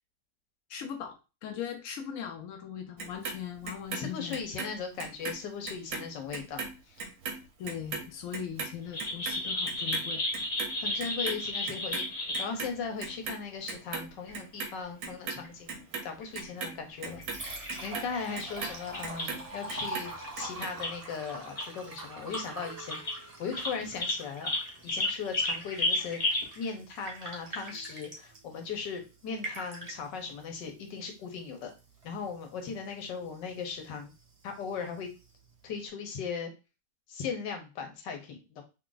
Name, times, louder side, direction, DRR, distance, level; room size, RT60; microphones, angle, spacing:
voice 1, 0.7-4.4 7.6-10.2, left 8 dB, 70° left, 5 dB, 0.8 m, -39 dB
Clock, 3.0-5.4 5.7-12.1 12.3-13.4 13.7-14.7 15.0-19.4 19.7-20.7 21.0-21.1, right 4 dB, 65° right, 1.2 m, -38 dB
voice 2, 3.9-7.1 10.8-12.1 12.4-24.5 24.8-31.7 32.0-34.1 34.4-35.1 35.6-36.5 37.1-38.6, left 5 dB, 85° left, 4 dB, 1.5 m, -38 dB
sound 1, 8.9-12.5 13.7-13.8 14.3-14.4 14.6-14.7 15.0-15.1 15.4-15.5 16.0-16.7 17.2-17.7 18.0-18.4 18.9-19.4 19.8-19.9 20.8-20.9 21.6-21.7 22.2-22.4 22.9-23.2 23.6-26.5, left 2 dB, 35° left, 0.6 m, -32 dB
Liquid, 16.9-35.9, right 2 dB, 30° right, 0.8 m, -45 dB
3.8 x 3.2 x 2.5 m, 0.29 s
omnidirectional pair, 1.9 m